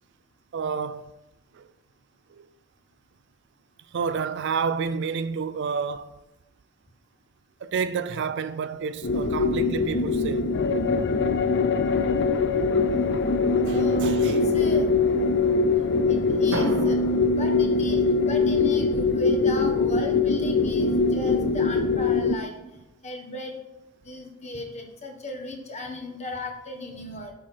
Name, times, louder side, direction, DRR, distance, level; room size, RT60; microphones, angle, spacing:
voice 1, 0.5-1.1 1.5-1.7 2.3-2.5 3.9-6.1 7.6-10.5 13.6-14.5, right 5 dB, 60° right, 0.4 m, -29 dB
sound 1, 9.0-22.4, left 4 dB, 60° left, 0.5 m, -22 dB
voice 2, 13.7-15.1 15.7-17.0 17.3-22.6 23.0-23.6 24.0-27.3, left 1 dB, 35° left, 1.4 m, -36 dB
Drum, 16.5-18.8, right 1 dB, 75° right, 1.1 m, -35 dB
7.4 x 6.0 x 4.4 m
head